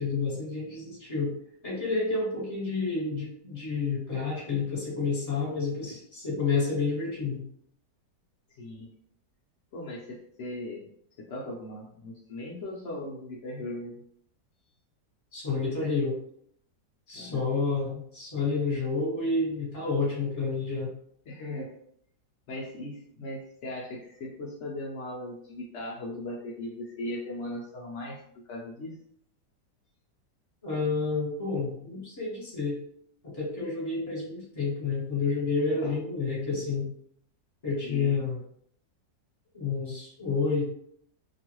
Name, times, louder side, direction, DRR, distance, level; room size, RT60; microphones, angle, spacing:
voice 1, 0.0-1.3 1.6-7.4 15.3-16.2 17.1-20.9 30.6-32.8 33.3-36.9 37.6-38.4 39.5-40.7, left 4 dB, 25° left, -5 dB, 1.1 m, -29 dB
voice 2, 8.5-8.9 9.7-10.9 11.2-14.0 17.1-17.4 17.8-17.9 21.3-21.7 22.5-28.2 28.4-28.9 35.8-36.0 37.8-38.2, left 1 dB, 80° left, -3 dB, 0.6 m, -38 dB
2.9 x 2.4 x 3.0 m, 0.66 s
omnidirectional pair, 1.9 m